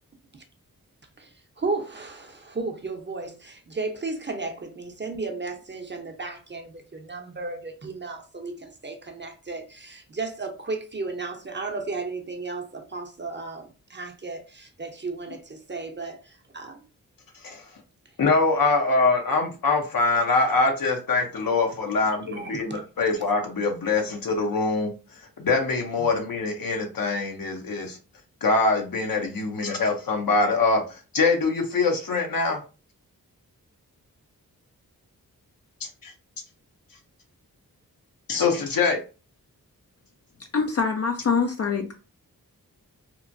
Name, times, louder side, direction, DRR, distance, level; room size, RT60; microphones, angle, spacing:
voice 1, 1.2-16.9 22.3-22.8 26.0-26.1, right 3 dB, 30° right, 0.7 m, -34 dB
voice 2, 18.2-24.9 25.4-28.0 28.4-30.8 31.1-32.6 36.0-36.1 38.3-39.0, left 3 dB, 65° left, 0.8 m, -23 dB
voice 3, 40.5-41.9, left 5 dB, 45° left, 0.4 m, -24 dB
3.0 x 2.1 x 2.5 m
cardioid pair, 40°, 37 cm